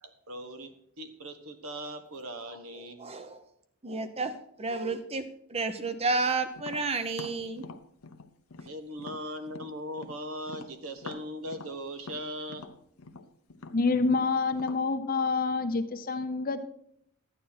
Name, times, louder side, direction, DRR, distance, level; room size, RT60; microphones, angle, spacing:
voice 1, 0.0-3.2 8.6-12.7, equal, 75° right, 7 dB, 1.3 m, -39 dB
voice 2, 3.0-3.4 3.8-5.2 5.5-7.6, right 3 dB, 25° right, 11 dB, 0.8 m, -31 dB
Tap, 6.5-10.2 10.5-14.9, left 4 dB, 75° left, 0.8 m, -45 dB
voice 3, 13.7-16.6, left 4 dB, 40° left, 10 dB, 0.7 m, -27 dB
12.5 x 9.2 x 4.3 m, 0.71 s
head